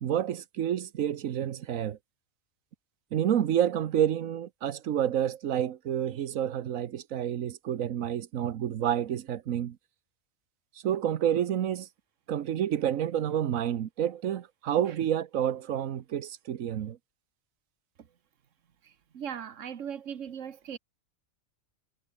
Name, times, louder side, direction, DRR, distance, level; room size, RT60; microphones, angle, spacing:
voice 1, 0.0-2.0 3.1-9.8 10.8-11.9 12.3-17.0, right 10 dB, 85° right, 1.3 m, -29 dB
voice 2, 19.1-20.8, right 8 dB, 70° right, 1.5 m, -38 dB
omnidirectional pair, 1.4 m